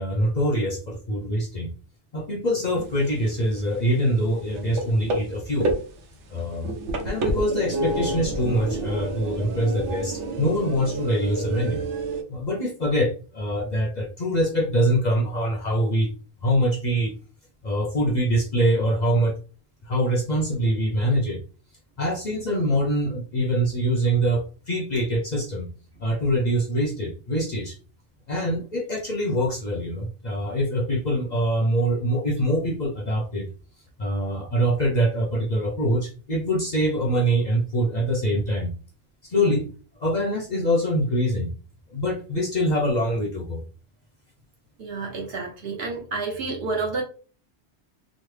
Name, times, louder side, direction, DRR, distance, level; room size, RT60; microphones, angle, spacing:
voice 1, 0.0-1.7 2.1-5.7 6.3-6.7 7.0-11.8 12.3-16.1 16.4-17.2 17.6-19.4 19.9-21.4 22.0-25.7 26.0-27.8 28.3-33.5 34.0-38.7 39.2-39.7 40.0-41.5 41.9-43.6, equal, 50° left, 0 dB, 0.6 m, -24 dB
sound 1, 2.7-12.2, right 2 dB, 90° right, 1.0 m, -29 dB
voice 2, 44.8-47.0, right 3 dB, 60° right, 0 dB, 1.1 m, -29 dB
3.1 x 2.1 x 3.1 m, 0.37 s
omnidirectional pair, 1.2 m